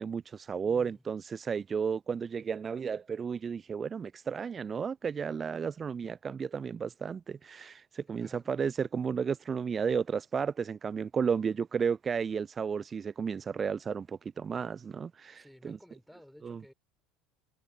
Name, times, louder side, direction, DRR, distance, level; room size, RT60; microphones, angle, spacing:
voice 1, 0.0-15.8 16.4-16.6, right 6 dB, 30° right, 0.6 m, -33 dB
voice 2, 0.7-1.0 8.1-8.6 15.3-16.7, equal, ahead, 4.3 m, -55 dB
figure-of-eight pair, 65°, 0 cm